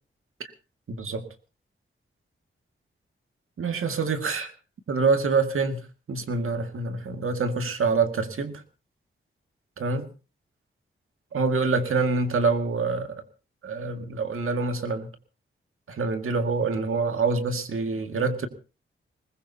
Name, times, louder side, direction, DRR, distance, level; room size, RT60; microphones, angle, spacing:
voice 1, 0.9-1.2 3.6-4.5 4.9-5.8 6.1-8.6 9.8-10.1 11.3-13.2 13.6-15.1 15.9-18.5, right 4 dB, 80° right, 6 dB, 2.0 m, -26 dB
20.5 x 20.5 x 2.8 m, 0.33 s
wide cardioid pair, 125°, 21 cm